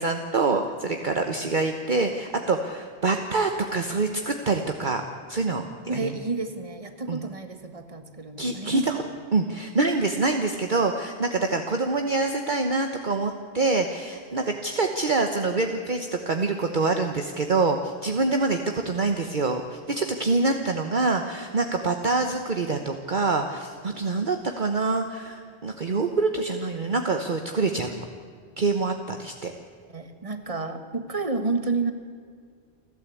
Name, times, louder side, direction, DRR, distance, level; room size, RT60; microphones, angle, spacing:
voice 1, 0.0-6.1 7.1-7.2 8.4-9.0 9.3-28.0 28.6-29.5, right 3 dB, 45° right, 5 dB, 1.2 m, -26 dB
voice 2, 5.8-9.1 29.9-31.9, right 3 dB, 30° right, 8 dB, 1.6 m, -30 dB
29.0 x 12.5 x 8.5 m, 2.1 s
omnidirectional pair, 1.1 m